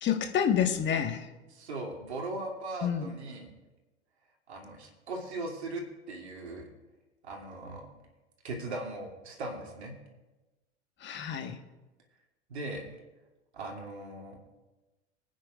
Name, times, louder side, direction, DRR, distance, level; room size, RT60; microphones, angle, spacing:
voice 1, 0.0-1.3 2.8-3.1 11.0-11.6, left 8 dB, 35° left, 5 dB, 1.5 m, -28 dB
voice 2, 1.5-3.5 4.5-6.6 7.2-7.8 8.4-9.9 12.5-12.8 13.5-14.4, right 2 dB, 75° right, -1 dB, 2.8 m, -39 dB
24.5 x 9.3 x 2.5 m, 1.1 s
figure-of-eight pair, 80°, 33 cm